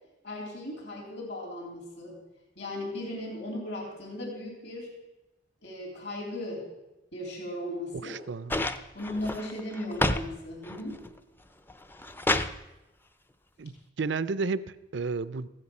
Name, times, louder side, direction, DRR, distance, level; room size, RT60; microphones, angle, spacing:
voice 1, 0.2-2.2 2.6-4.9 5.6-6.7 7.1-8.2 8.9-11.0, left 1 dB, 65° left, -1 dB, 3.4 m, -37 dB
voice 2, 8.0-8.5 13.6-15.5, right 4 dB, 70° right, 16 dB, 0.5 m, -32 dB
sound 1, 8.5-10.3 10.6-11.2 11.7-12.6 13.8-13.9, left 1 dB, 10° left, 0.5 m, -29 dB
15.0 x 9.7 x 6.0 m, 1.0 s
head